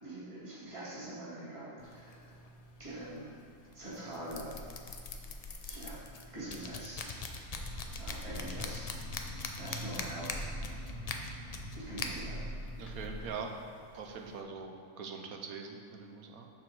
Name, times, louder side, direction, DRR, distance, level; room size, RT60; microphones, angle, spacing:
voice 1, 0.0-2.4 2.8-3.4 3.7-4.6 5.6-7.3 8.0-8.9 9.6-10.5 11.8-12.4, right 1 dB, 20° right, -8 dB, 2.0 m, -44 dB
sound 1, 1.8-14.4, left 3 dB, 65° left, 0.3 m, -44 dB
sound 2, 7.5-13.3, equal, 65° right, 1.4 m, -43 dB
voice 2, 12.8-13.5 13.9-16.5, right 5 dB, 85° right, 3 dB, 1.3 m, -43 dB
7.1 x 5.0 x 6.2 m, 2.6 s
omnidirectional pair, 1.5 m